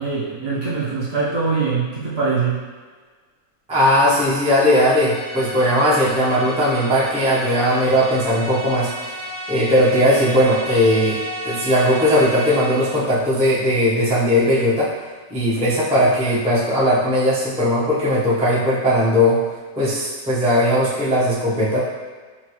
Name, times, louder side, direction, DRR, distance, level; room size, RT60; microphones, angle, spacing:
voice 1, 0.0-2.6, right 4 dB, 45° right, -7 dB, 1.0 m, -23 dB
voice 2, 3.7-9.1 9.5-14.9 15.3-19.4 19.8-21.8, equal, 10° right, -9 dB, 0.3 m, -18 dB
sound 1, 4.6-13.1, equal, 65° right, 1.7 m, -32 dB
5.9 x 2.3 x 3.0 m, 1.5 s
omnidirectional pair, 1.9 m